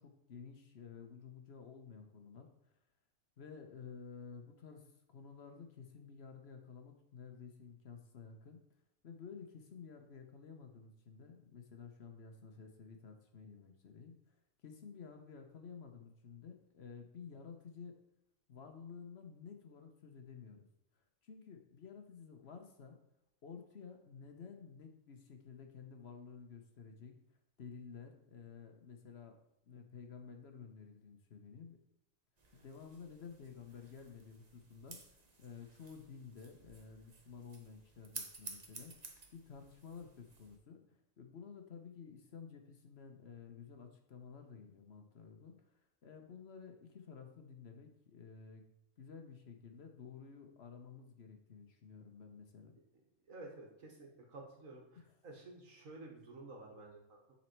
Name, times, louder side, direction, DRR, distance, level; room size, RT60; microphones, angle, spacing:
voice 1, 0.0-2.5 3.4-8.6 9.0-14.3 14.6-17.9 18.5-20.7 21.2-23.0 23.4-27.2 27.6-29.4 29.6-31.8 32.5-35.0 35.4-45.6 46.0-48.7 49.0-52.8 55.0-55.1, left 6 dB, 55° left, 5 dB, 1.1 m, -52 dB
sound 1, 32.4-40.6, right 3 dB, 35° right, 0.9 m, -54 dB
voice 2, 53.3-57.2, right 2 dB, 80° right, 0 dB, 1.9 m, -52 dB
9.1 x 4.2 x 4.5 m, 0.86 s
omnidirectional pair, 1.4 m